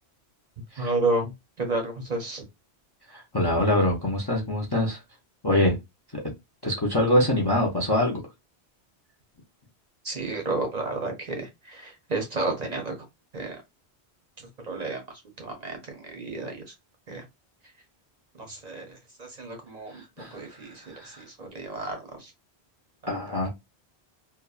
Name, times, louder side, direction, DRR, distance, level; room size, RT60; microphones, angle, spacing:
voice 1, 0.8-1.3 1.6-2.4 10.0-13.0 13.3-13.6 14.4-16.6 17.1-17.3 18.4-20.0 20.3-22.3, right 2 dB, 45° right, 0.6 m, -31 dB
voice 2, 3.1-5.0 5.4-5.8 6.1-6.2 6.6-8.2 19.9-21.2 23.1-23.5, left 1 dB, 30° left, 0.4 m, -25 dB
2.7 x 2.2 x 2.3 m
omnidirectional pair, 1.1 m